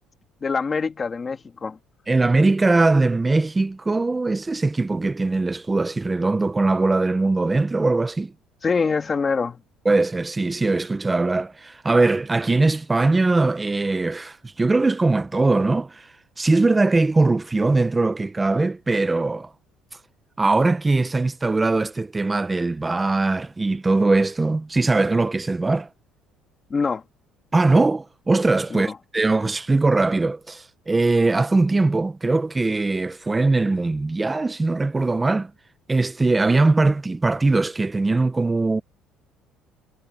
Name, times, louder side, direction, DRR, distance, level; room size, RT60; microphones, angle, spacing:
voice 1, 0.4-1.8 8.6-9.6 26.7-27.0 28.7-28.8, left 5 dB, 20° left, 2.0 m, -24 dB
voice 2, 2.1-8.3 9.8-16.1 16.4-19.5 20.4-25.9 27.5-35.5 35.9-38.8, right 3 dB, 10° right, 0.5 m, -21 dB
cardioid pair, 175°, 0 cm